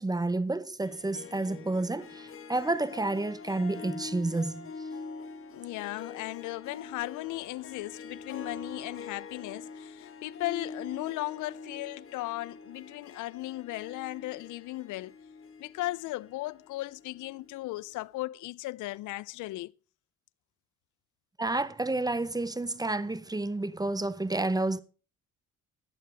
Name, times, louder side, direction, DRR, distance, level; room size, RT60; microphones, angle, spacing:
voice 1, 0.0-4.7 21.4-24.8, right 2 dB, 15° right, 0.7 m, -30 dB
Harp, 0.8-17.6, left 4 dB, 45° left, 1.4 m, -45 dB
voice 2, 5.5-15.2 15.6-19.7, left 18 dB, 80° left, 0.5 m, -36 dB
14.0 x 11.0 x 3.4 m
cardioid pair, 90°, 30 cm